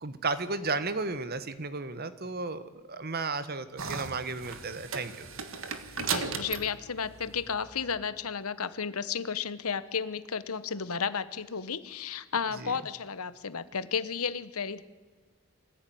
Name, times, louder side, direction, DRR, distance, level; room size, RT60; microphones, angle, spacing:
voice 1, 0.0-5.3 12.6-12.7, right 3 dB, 45° right, 13 dB, 1.2 m, -34 dB
sound 1, 3.8-8.1, right 5 dB, 65° right, 1.6 m, -37 dB
voice 2, 6.0-14.8, left 6 dB, 80° left, 14 dB, 1.1 m, -33 dB
23.0 x 15.5 x 9.4 m, 1.4 s
head